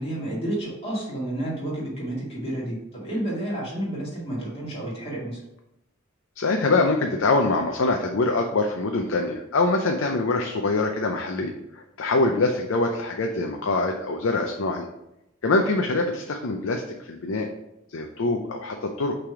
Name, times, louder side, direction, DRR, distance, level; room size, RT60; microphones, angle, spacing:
voice 1, 0.0-5.4, right 1 dB, 30° left, -5 dB, 2.0 m, -30 dB
voice 2, 6.4-14.9 15.4-17.5 17.9-19.2, left 3 dB, 70° left, 3 dB, 0.5 m, -24 dB
5.8 x 3.4 x 4.8 m, 0.86 s
head